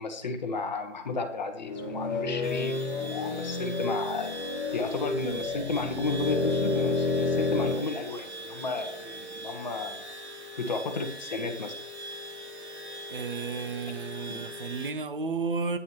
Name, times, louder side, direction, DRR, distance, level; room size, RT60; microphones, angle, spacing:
voice 1, 0.0-4.3 4.7-9.9 10.6-11.7 14.3-14.4, left 3 dB, 40° left, 5 dB, 1.3 m, -33 dB
sound 1, 1.6-7.8, left 3 dB, 20° left, 1.1 m, -30 dB
sound 2, 2.4-14.9, equal, 65° right, 2.5 m, -42 dB
voice 2, 13.1-15.8, right 4 dB, 45° right, 9 dB, 1.0 m, -32 dB
10.5 x 9.7 x 3.1 m, 0.77 s
figure-of-eight pair, 155°, 36 cm